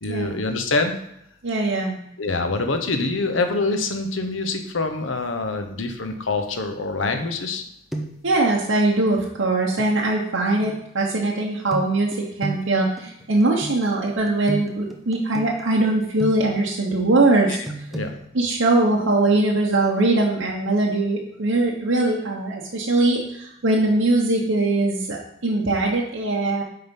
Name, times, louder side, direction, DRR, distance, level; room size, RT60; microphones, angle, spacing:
voice 1, 0.0-1.0 2.2-7.6 17.5-17.6 17.9-18.1, left 3 dB, 70° left, 6 dB, 1.0 m, -25 dB
voice 2, 1.4-2.0 8.2-17.6 18.3-26.6, right 2 dB, 70° right, -3 dB, 1.0 m, -21 dB
sound 1, 7.1-7.6 7.9-8.3 9.8-9.9 11.7-16.7 17.7-18.1, right 2 dB, ahead, 0.9 m, -34 dB
9.3 x 3.9 x 5.4 m, 0.76 s
head